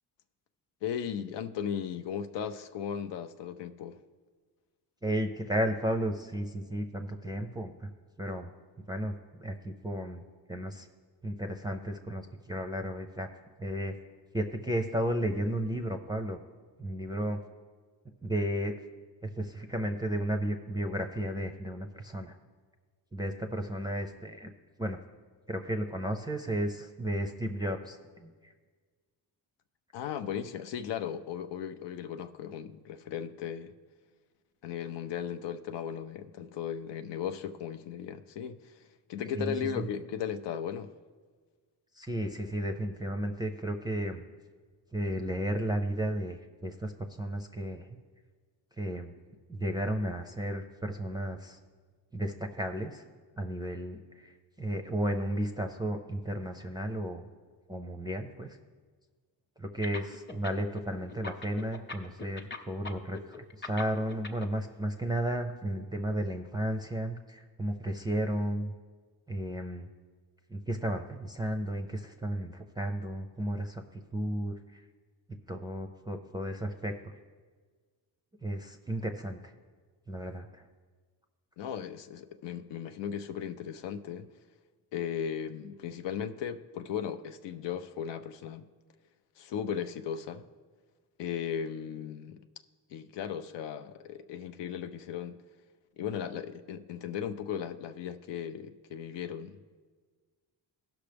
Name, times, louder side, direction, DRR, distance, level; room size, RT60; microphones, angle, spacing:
voice 1, 0.8-4.0 29.9-33.7 34.6-40.9 81.6-84.3 84.9-88.7 89.4-90.5 91.2-92.4 92.9-95.4 96.0-99.8, left 8 dB, 85° left, 0.6 m, -36 dB
voice 2, 5.0-7.9 8.2-8.5 8.9-9.1 9.4-10.2 10.5-10.9 11.2-13.3 13.6-13.9 14.3-16.4 16.8-17.4 18.2-18.7 19.2-22.4 23.1-24.5 24.8-25.0 25.5-28.5 39.3-39.9 42.0-44.2 44.9-47.9 48.8-49.1 49.5-51.6 52.1-53.0 53.4-57.3 57.7-58.6 59.6-68.7 69.3-69.9 70.5-74.8 75.5-77.1 78.4-79.5 80.1-80.7, right 1 dB, 10° right, 0.5 m, -33 dB
sound 1, 59.8-60.8 61.1-64.5, left 4 dB, 25° left, 0.8 m, -41 dB
17.0 x 6.0 x 3.4 m
cardioid pair, 115°, 41 cm